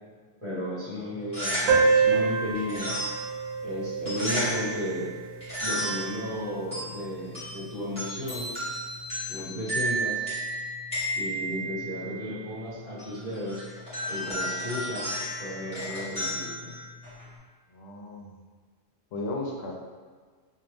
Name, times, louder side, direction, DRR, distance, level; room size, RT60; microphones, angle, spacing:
voice 1, 0.4-3.0 3.6-5.1 5.6-8.5 9.3-10.2 11.1-13.6 14.1-16.7, left 1 dB, 25° right, -15 dB, 1.2 m, -34 dB
sound 1, 1.1-17.4, right 1 dB, 5° left, 1.2 m, -34 dB
sound 2, 1.7-6.7, right 5 dB, 75° right, 0.9 m, -27 dB
sound 3, 8.3-10.9, left 2 dB, 35° left, 0.8 m, -42 dB
voice 2, 17.7-18.4 19.1-19.7, left 2 dB, 70° left, -1 dB, 0.8 m, -35 dB
2.5 x 2.3 x 3.3 m, 1.5 s
omnidirectional pair, 1.2 m